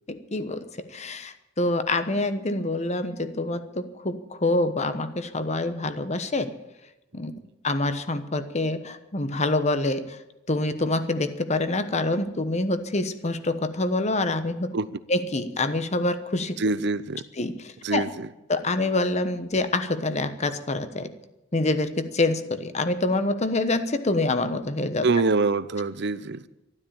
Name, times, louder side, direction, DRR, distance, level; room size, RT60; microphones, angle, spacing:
voice 1, 0.1-6.5 7.1-7.3 7.6-10.2 10.5-14.7 15.1-16.6 17.4-18.0 18.5-21.1 21.5-25.1, left 2 dB, 35° left, 1.1 m, -26 dB
voice 2, 16.6-17.2 17.8-18.3 25.0-26.4, right 3 dB, 60° right, 0.7 m, -25 dB
12.5 x 12.0 x 8.7 m
head